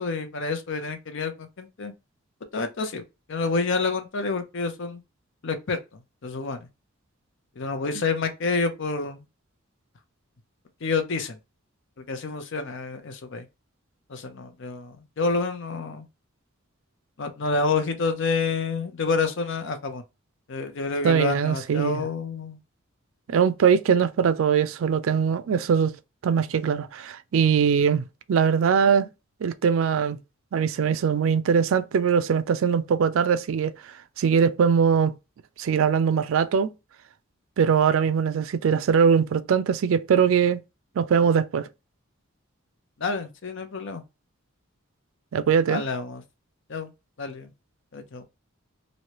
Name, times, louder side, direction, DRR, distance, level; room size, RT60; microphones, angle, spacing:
voice 1, 0.0-1.9 2.5-3.0 3.3-5.0 5.4-5.8 6.2-6.7 7.6-9.2 10.8-11.4 12.0-13.5 14.1-16.1 17.2-20.0 20.5-22.6 43.0-44.0 45.7-46.2 46.7-46.9 47.2-47.5 47.9-48.2, left 4 dB, 60° left, 0.6 m, -28 dB
voice 2, 21.0-22.0 23.3-26.0 26.2-29.1 29.4-30.2 30.5-33.7 34.2-35.2 35.6-36.7 37.6-40.6 41.0-41.7 45.3-45.8, right 7 dB, 70° right, 0.4 m, -21 dB
3.1 x 2.7 x 2.9 m
head